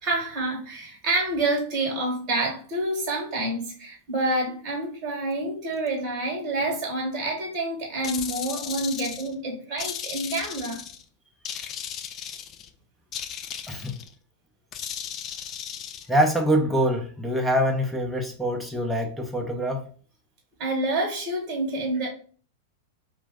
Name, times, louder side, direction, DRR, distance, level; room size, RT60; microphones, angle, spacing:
voice 1, 0.0-10.8 20.6-22.1, right 2 dB, 35° right, 1.1 m, -28 dB
sound 1, 8.0-9.3 9.8-11.0 11.5-12.7 13.1-14.1 14.7-16.1, left 8 dB, 35° left, 0.3 m, -36 dB
voice 2, 16.1-19.9, equal, ahead, 0.6 m, -24 dB
2.6 x 2.1 x 3.4 m
hypercardioid pair, 100°, 0 cm